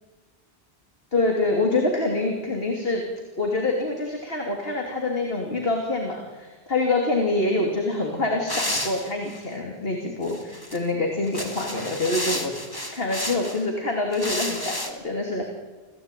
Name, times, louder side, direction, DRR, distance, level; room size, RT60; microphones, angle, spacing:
voice 1, 1.1-3.0 3.4-12.5 12.9-15.4, left 2 dB, 65° left, 2 dB, 3.1 m, -26 dB
sound 1, 8.5-9.4 10.2-10.8 11.2-13.6 14.1-14.9, left 1 dB, 20° left, 2.5 m, -31 dB
26.0 x 17.0 x 9.1 m, 1.3 s
omnidirectional pair, 1.1 m